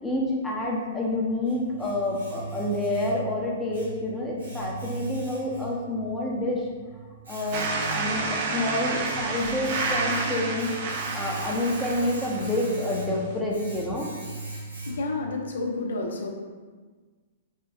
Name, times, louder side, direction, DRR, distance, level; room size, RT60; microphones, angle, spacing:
voice 1, 0.0-6.7 7.3-14.1, left 1 dB, 10° left, -4 dB, 0.6 m, -28 dB
Domestic sounds home sounds, 0.9-15.3, right 3 dB, 85° right, 1.1 m, -40 dB
sound 1, 7.5-13.3, right 3 dB, 50° right, 0.4 m, -30 dB
voice 2, 14.8-16.3, left 3 dB, 75° left, 1 dB, 0.5 m, -30 dB
3.8 x 2.3 x 2.3 m, 1.4 s
hypercardioid pair, 120°, 0 cm